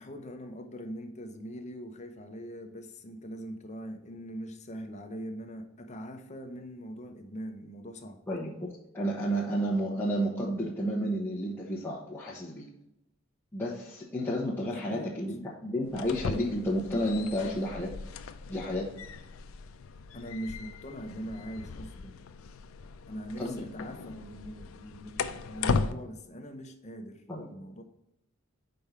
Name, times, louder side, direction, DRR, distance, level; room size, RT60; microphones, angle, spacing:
voice 1, 0.0-8.2 14.6-15.1 20.1-22.2 23.1-27.2 27.5-27.8, equal, 35° left, 6 dB, 0.8 m, -42 dB
voice 2, 8.3-8.7 8.9-12.7 13.5-17.9 18.5-18.9 23.4-23.6 27.3-27.5, equal, 10° left, -7 dB, 1.1 m, -31 dB
sound 1, 15.8-25.9, left 4 dB, 80° left, 0.5 m, -37 dB
5.3 x 4.7 x 5.6 m, 0.85 s
head